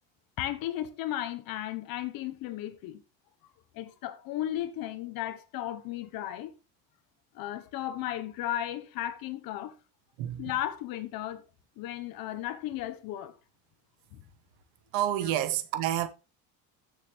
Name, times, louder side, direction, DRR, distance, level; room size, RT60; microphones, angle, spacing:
voice 1, 0.4-3.0 3.7-6.5 7.3-9.7 10.4-11.4 11.8-13.4 14.1-14.2, left 12 dB, 60° left, 1.4 m, -35 dB
voice 2, 10.2-10.5 14.9-16.1, right 12 dB, 80° right, 1.5 m, -29 dB
15.0 x 6.7 x 3.4 m
cardioid pair, 130°, 39 cm